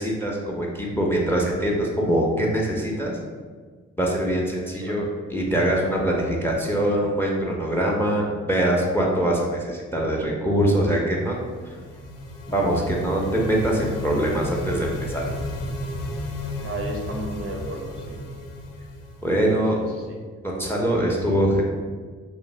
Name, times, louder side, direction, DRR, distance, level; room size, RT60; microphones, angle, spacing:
voice 1, 0.0-3.2 4.0-11.3 12.5-15.3 19.2-19.8 20.4-21.6, right 1 dB, 5° left, -2 dB, 0.5 m, -23 dB
sound 1, 11.1-19.9, left 1 dB, 75° left, 0.5 m, -34 dB
voice 2, 16.6-18.2 19.9-20.2, right 1 dB, 45° right, 1 dB, 0.6 m, -33 dB
2.6 x 2.0 x 3.1 m, 1.5 s
supercardioid pair, 55°, 33 cm